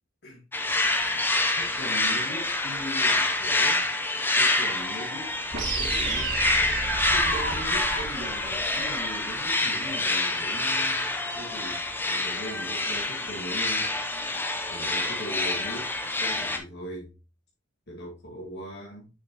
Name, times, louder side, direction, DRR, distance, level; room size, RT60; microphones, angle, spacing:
sound 1, 0.5-16.6, left 2 dB, 10° left, 0.7 m, -27 dB
voice 1, 1.5-3.8 4.2-6.5 7.1-13.9 14.7-15.9 16.2-17.2 17.9-19.1, equal, 50° left, 1.9 m, -40 dB
sound 2, 5.5-9.5, right 3 dB, 55° right, 2.4 m, -31 dB
6.8 x 6.6 x 3.0 m
head